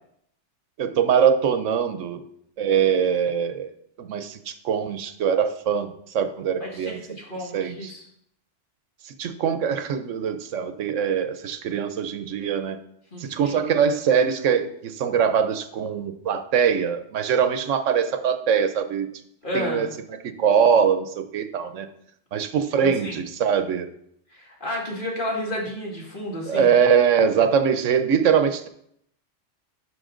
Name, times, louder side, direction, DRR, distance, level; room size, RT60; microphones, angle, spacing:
voice 1, 0.8-2.2 2.6-3.7 4.0-7.0 7.5-7.9 9.0-12.8 13.2-19.1 19.5-19.9 20.4-21.9 22.3-23.9 26.5-28.7, right 7 dB, 85° right, 10 dB, 1.1 m, -22 dB
voice 2, 6.6-8.0 13.1-13.6 19.4-19.9 22.8-23.2 24.3-26.8, left 1 dB, 45° left, -2 dB, 2.3 m, -32 dB
11.5 x 5.7 x 3.8 m, 0.71 s
omnidirectional pair, 1.2 m